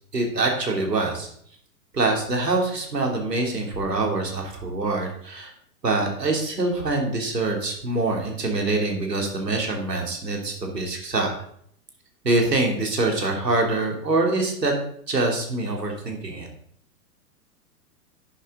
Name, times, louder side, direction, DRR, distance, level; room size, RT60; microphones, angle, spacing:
voice 1, 0.1-1.3 1.9-5.5 5.8-11.3 12.2-14.7 15.1-16.5, right 2 dB, 80° right, 1 dB, 3.2 m, -24 dB
11.5 x 9.9 x 3.9 m, 0.65 s
figure-of-eight pair, 105°, 48 cm